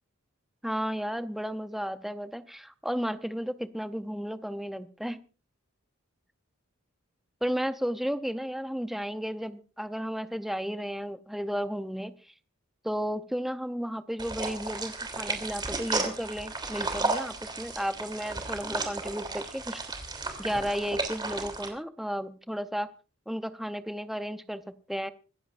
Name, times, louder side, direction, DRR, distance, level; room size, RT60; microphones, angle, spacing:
voice 1, 0.6-5.2 7.4-12.2 12.8-19.8 20.4-22.9 23.3-25.1, equal, ahead, 10 dB, 0.6 m, -33 dB
sound 1, 14.2-21.7, right 3 dB, 20° right, 3.1 m, -33 dB
25.5 x 15.5 x 2.5 m, 0.36 s
head